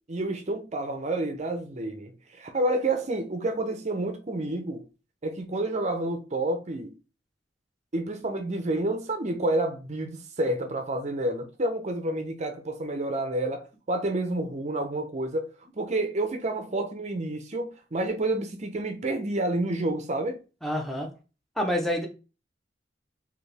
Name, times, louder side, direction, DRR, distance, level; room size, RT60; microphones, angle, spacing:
voice 1, 0.1-4.8 5.2-6.9 7.9-15.5 15.8-20.4, right 2 dB, 40° right, 0.6 m, -29 dB
voice 2, 20.6-21.1 21.6-22.1, equal, ahead, 0.9 m, -27 dB
4.3 x 2.9 x 3.4 m
head